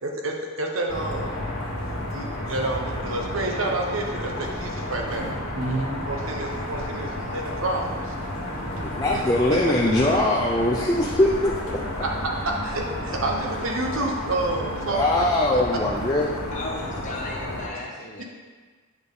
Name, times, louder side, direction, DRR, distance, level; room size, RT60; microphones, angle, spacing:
voice 1, 0.0-1.3 2.1-8.1 8.8-8.9 12.0-12.1 12.4-15.0 18.2-18.3, right 2 dB, 70° right, 1 dB, 1.1 m, -29 dB
sound 1, 0.9-17.7, left 1 dB, 85° left, 1.6 m, -32 dB
sound 2, 2.6-13.0, right 2 dB, 40° right, 1.0 m, -48 dB
voice 2, 8.8-11.8 14.9-16.3, left 1 dB, 20° left, -3 dB, 0.5 m, -22 dB
sound 3, 10.0-15.2, equal, 65° left, 0.9 m, -44 dB
voice 3, 16.5-18.2, left 2 dB, 35° left, -3 dB, 1.3 m, -35 dB
8.0 x 5.6 x 3.8 m, 1.4 s
head